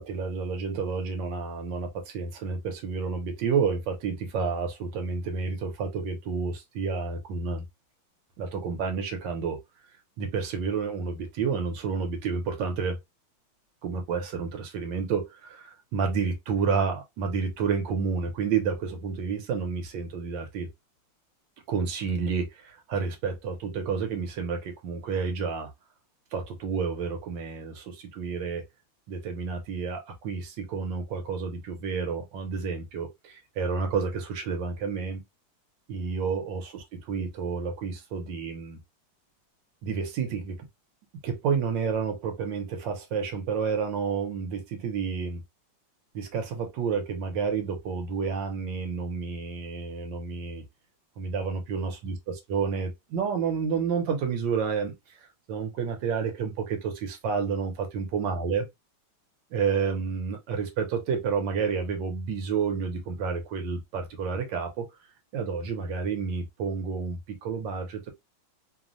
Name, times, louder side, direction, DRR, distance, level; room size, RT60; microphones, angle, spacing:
voice 1, 0.0-7.6 8.4-9.6 10.2-13.0 13.8-20.7 21.7-25.7 26.3-28.6 29.1-35.2 35.9-38.8 39.8-40.7 41.2-45.4 46.1-50.6 51.2-58.6 59.5-64.9 65.3-68.1, right 5 dB, 70° right, 1.3 m, -30 dB
3.3 x 2.1 x 2.4 m
omnidirectional pair, 2.1 m